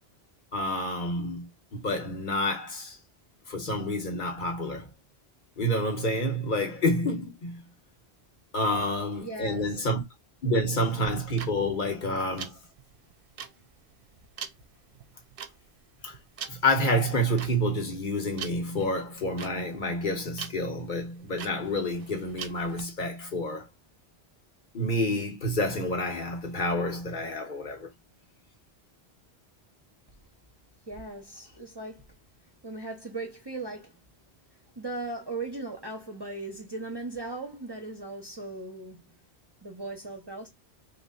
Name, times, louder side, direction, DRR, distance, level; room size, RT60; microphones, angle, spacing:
voice 1, 0.5-3.0 3.5-4.9 5.6-7.6 8.5-10.0 10.4-12.6 16.0-16.2 16.5-23.7 24.7-27.9, left 1 dB, 55° left, 1.0 m, -28 dB
voice 2, 9.2-9.8 30.9-32.1 32.6-34.0 34.8-39.0 39.6-40.5, right 2 dB, 25° right, 0.7 m, -38 dB
sound 1, 11.1-22.8, right 8 dB, 65° right, 0.7 m, -43 dB
3.1 x 2.3 x 3.7 m
omnidirectional pair, 1.1 m